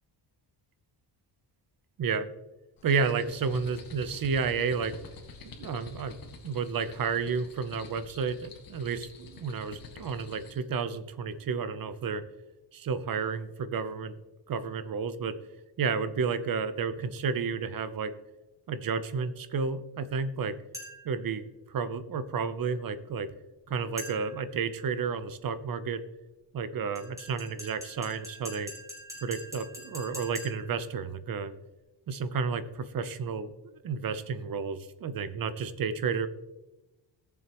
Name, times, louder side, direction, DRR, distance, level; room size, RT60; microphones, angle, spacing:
sound 1, 2.8-10.6, left 3 dB, 50° left, 1.7 m, -48 dB
voice 1, 2.8-5.0 5.6-6.2 6.4-12.2 12.7-14.1 14.5-15.4 15.8-18.1 18.7-20.6 21.0-23.3 23.7-26.0 26.5-28.7 29.2-31.5 32.1-36.3, right 5 dB, 50° right, 12 dB, 0.8 m, -31 dB
sound 2, 20.7-21.2 24.0-24.5 27.0-30.8, equal, 5° right, 2.9 m, -44 dB
18.0 x 7.2 x 3.0 m, 1.1 s
wide cardioid pair, 140°, 44 cm